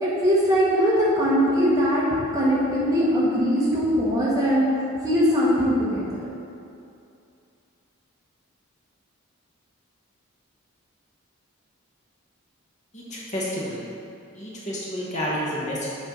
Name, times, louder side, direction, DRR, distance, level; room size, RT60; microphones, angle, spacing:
voice 1, 0.0-2.0 2.3-4.7 5.0-6.1, equal, 15° right, -7 dB, 1.3 m, -21 dB
voice 2, 12.9-13.8 14.3-15.9, equal, 35° left, -6 dB, 1.0 m, -30 dB
7.3 x 4.3 x 5.2 m, 2.6 s
head